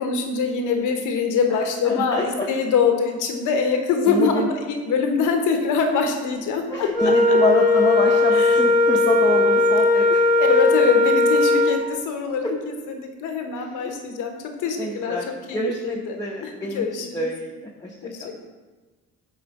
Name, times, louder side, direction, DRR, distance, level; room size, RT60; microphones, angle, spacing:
voice 1, 0.0-7.4 8.3-8.6 10.4-16.2 16.4-17.3 18.0-18.3, left 5 dB, 90° left, 4 dB, 1.1 m, -24 dB
voice 2, 1.8-2.5 4.0-4.5 6.7-10.2 12.4-12.5 13.6-13.9 14.8-15.3 15.5-16.9 17.1-17.5 17.8-17.9 18.2-18.3, left 1 dB, 15° left, -3 dB, 0.9 m, -26 dB
Wind instrument woodwind instrument, 6.9-11.8, left 2 dB, 25° right, 2.1 m, -18 dB
9.3 x 3.3 x 5.3 m, 1.2 s
cardioid pair, 90°, 30 cm